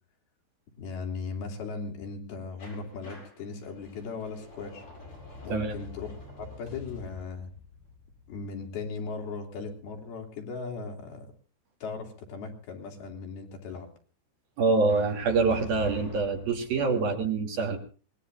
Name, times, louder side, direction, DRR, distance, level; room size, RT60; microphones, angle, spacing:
voice 1, 0.8-4.8 5.4-7.5 8.3-11.3 11.8-13.9 17.1-17.2, left 4 dB, 60° left, 2 dB, 4.7 m, -38 dB
sound 1, 2.6-9.4 14.9-17.1, left 4 dB, 30° left, 8.7 m, -46 dB
voice 2, 14.6-17.8, right 4 dB, 55° right, 4 dB, 4.3 m, -25 dB
25.5 x 20.0 x 2.5 m, 0.38 s
omnidirectional pair, 5.1 m